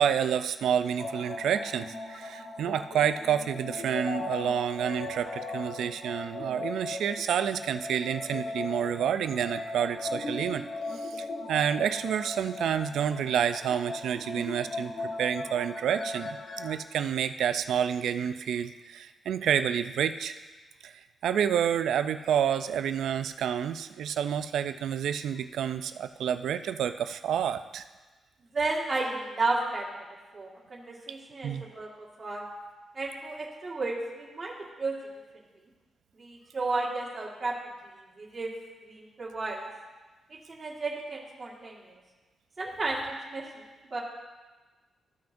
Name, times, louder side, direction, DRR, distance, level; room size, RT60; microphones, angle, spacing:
voice 1, 0.0-10.6 11.0-16.3 16.6-20.4 20.8-20.9 21.2-27.8 31.4-31.6, right 8 dB, 85° right, 10 dB, 0.4 m, -29 dB
sound 1, 1.0-16.7, left 3 dB, 50° left, 1.0 m, -38 dB
voice 2, 28.5-29.9 30.3-32.4 32.9-34.9 36.2-37.6 38.2-38.5 38.9-39.7 40.5-41.8 42.6-43.4 43.9-44.0, right 3 dB, 30° right, -5 dB, 1.7 m, -33 dB
14.0 x 5.8 x 2.6 m, 1.2 s
cardioid pair, 125°, 0 cm